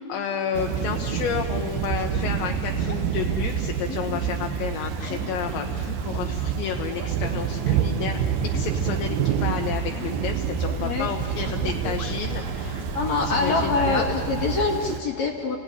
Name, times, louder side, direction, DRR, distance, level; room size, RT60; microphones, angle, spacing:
voice 1, 0.0-8.3 8.5-12.8 13.2-14.1, left 8 dB, 75° left, 3 dB, 3.0 m, -31 dB
Thunder / Rain, 0.5-15.0, right 9 dB, 80° right, 2.1 m, -28 dB
sound 1, 0.7-14.0, left 3 dB, 40° left, 1.3 m, -38 dB
sound 2, 1.2-15.0, right 3 dB, 65° right, 3.7 m, -39 dB
voice 2, 11.6-11.9 12.9-15.6, left 4 dB, 60° left, 1 dB, 2.0 m, -25 dB
29.0 x 17.0 x 10.0 m, 2.6 s
omnidirectional pair, 5.5 m